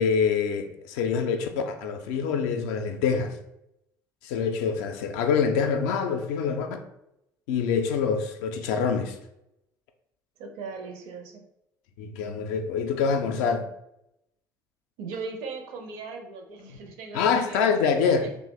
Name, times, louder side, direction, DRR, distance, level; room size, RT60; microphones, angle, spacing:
voice 1, 0.0-3.3 4.2-6.7 7.5-9.2 12.0-13.7 17.1-18.2, left 6 dB, 65° left, 0.4 m, -25 dB
voice 2, 10.4-11.4 15.0-18.3, right 4 dB, 60° right, 0.5 m, -38 dB
2.7 x 2.1 x 3.1 m
figure-of-eight pair, 55°, 11 cm